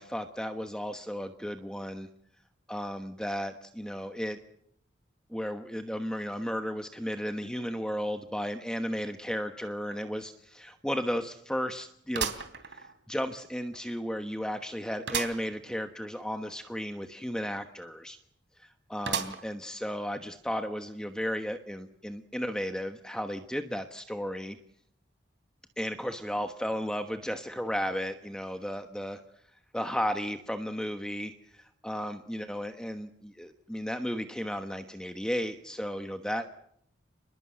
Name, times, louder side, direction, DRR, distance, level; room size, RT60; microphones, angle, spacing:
voice 1, 0.0-2.1 2.7-4.4 5.3-12.3 12.7-18.2 18.6-24.6 25.8-29.2 29.7-36.5, equal, 5° left, 6 dB, 1.1 m, -34 dB
sound 1, 9.9-10.0 10.4-10.5 12.1-13.2 13.7-13.8 15.1-15.5 15.9-16.0 16.2-16.3 19.1-19.7 20.3-20.4 21.3-21.4, right 7 dB, 65° right, 3.2 m, -34 dB
29.5 x 21.5 x 7.8 m, 0.71 s
head